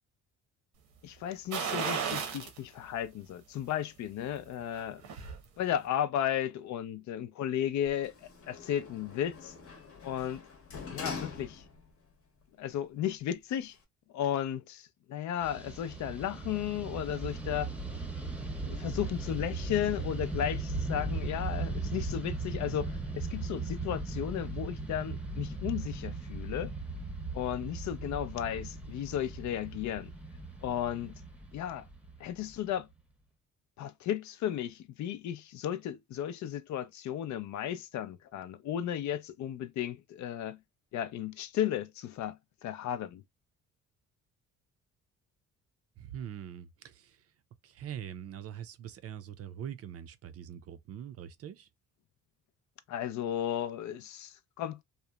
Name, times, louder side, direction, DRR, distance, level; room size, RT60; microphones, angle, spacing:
voice 1, 1.0-5.0 5.6-9.5 10.0-10.4 10.9-11.6 12.6-13.8 14.1-17.7 18.6-26.7 27.3-30.1 30.6-31.2 31.5-31.9 32.2-32.9 33.8-40.6 40.9-43.2 52.9-54.8, left 10 dB, 70° left, 0.4 m, -34 dB
sound 1, 1.5-2.6 3.0-3.1 4.6-5.4 5.7-5.8, right 7 dB, 80° right, 0.8 m, -34 dB
Sliding door, 7.8-12.0 12.4-12.5, left 5 dB, 50° left, 0.8 m, -44 dB
Fixed-wing aircraft airplane, 15.4-32.8, right 3 dB, 5° right, 0.7 m, -38 dB
voice 2, 46.0-47.2 47.6-51.7, right 9 dB, 50° right, 0.5 m, -43 dB
2.9 x 2.0 x 2.2 m
cardioid pair, 90°, 30 cm